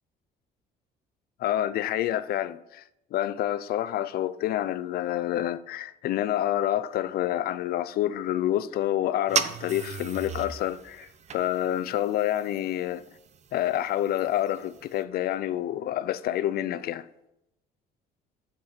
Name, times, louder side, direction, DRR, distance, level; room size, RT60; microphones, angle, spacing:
voice 1, 1.4-2.8 3.1-13.0 13.5-17.1, left 12 dB, 65° left, 0.5 m, -28 dB
sound 1, 9.3-15.0, right 7 dB, 40° right, 0.7 m, -36 dB
7.5 x 7.3 x 5.9 m
cardioid pair, 110°, 17 cm